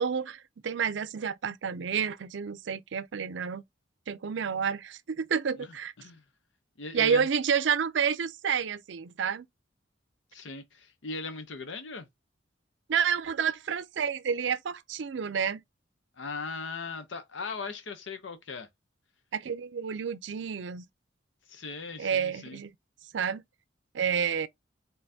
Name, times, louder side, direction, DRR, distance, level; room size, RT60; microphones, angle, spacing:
voice 1, 0.0-3.6 4.1-5.9 6.9-9.5 12.9-15.6 19.3-20.9 22.0-22.7 23.1-23.4 23.9-24.5, right 7 dB, 75° right, 0.4 m, -29 dB
voice 2, 6.8-7.3 10.3-12.1 16.2-18.7 21.5-22.6, left 4 dB, 80° left, 0.7 m, -38 dB
4.2 x 3.9 x 2.7 m
head